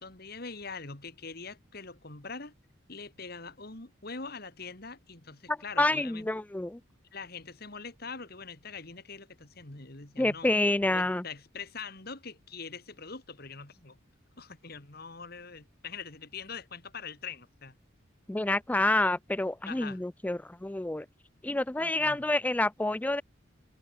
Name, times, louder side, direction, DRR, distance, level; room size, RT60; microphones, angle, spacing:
voice 1, 0.0-2.5 2.9-6.3 7.1-10.5 10.9-14.0 14.4-17.7 19.6-20.0 21.8-22.2, left 5 dB, 50° left, 2.1 m, -43 dB
voice 2, 5.5-6.8 10.2-11.2 18.3-21.1 21.4-23.2, left 2 dB, 10° left, 0.3 m, -28 dB
head